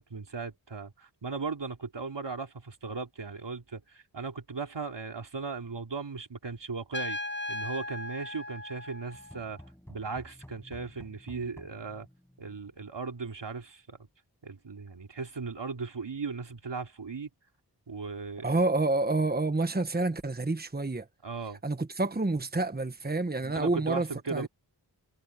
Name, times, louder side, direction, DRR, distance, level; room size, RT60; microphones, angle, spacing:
voice 1, 0.0-7.2 7.5-9.6 9.9-12.1 12.4-14.0 14.4-17.3 17.9-18.6 21.2-21.6 23.4-24.5, right 4 dB, 80° right, 3.0 m, -37 dB
Trumpet, 6.9-9.6, left 1 dB, 25° left, 4.5 m, -37 dB
sound 1, 9.1-12.9, equal, 5° left, 7.7 m, -51 dB
voice 2, 18.4-21.1 21.6-24.5, right 2 dB, 25° right, 1.3 m, -28 dB
wide cardioid pair, 50°, 42 cm